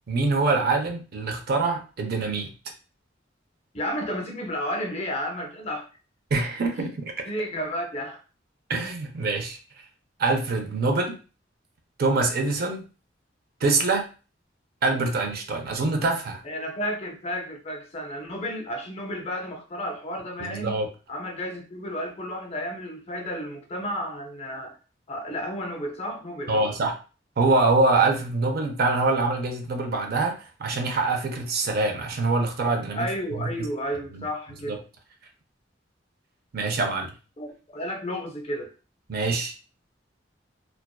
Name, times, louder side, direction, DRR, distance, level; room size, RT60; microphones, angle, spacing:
voice 1, 0.1-2.5 6.3-7.3 8.7-9.6 10.2-11.2 12.0-12.9 13.6-14.1 14.8-16.4 20.4-20.9 26.5-27.0 27.4-33.7 34.1-34.2 34.7-34.8 36.5-37.1 39.1-39.5, right 3 dB, 55° right, 4 dB, 0.5 m, -25 dB
voice 2, 3.7-5.9 7.3-8.2 16.4-20.8 21.1-24.8 25.1-26.7 32.9-34.8 37.4-38.7, equal, 35° left, 3 dB, 0.5 m, -32 dB
2.5 x 2.2 x 2.2 m, 0.35 s
head